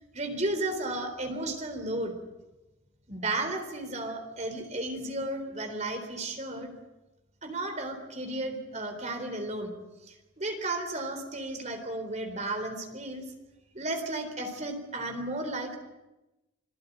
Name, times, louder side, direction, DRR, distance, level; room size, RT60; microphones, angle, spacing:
voice 1, 0.1-2.2 3.1-6.7 7.4-9.7 10.0-13.2 13.7-15.8, right 2 dB, 35° right, 6 dB, 3.8 m, -33 dB
26.5 x 17.0 x 9.3 m, 1.0 s
head